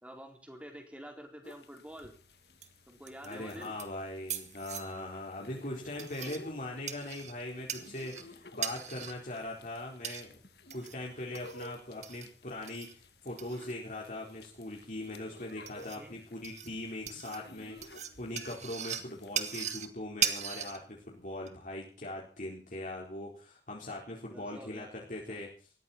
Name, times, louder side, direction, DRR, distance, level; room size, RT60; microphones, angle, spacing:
voice 1, 0.0-2.1 2.9-3.7 15.8-16.1 24.3-25.4, equal, 5° right, 4 dB, 4.0 m, -48 dB
sound 1, 1.4-19.9, left 2 dB, 65° left, 2.2 m, -55 dB
sound 2, 1.9-21.5, right 9 dB, 40° right, 1.9 m, -41 dB
voice 2, 3.2-10.4 10.7-25.7, left 1 dB, 45° left, -2 dB, 4.3 m, -41 dB
20.0 x 15.0 x 4.4 m, 0.40 s
head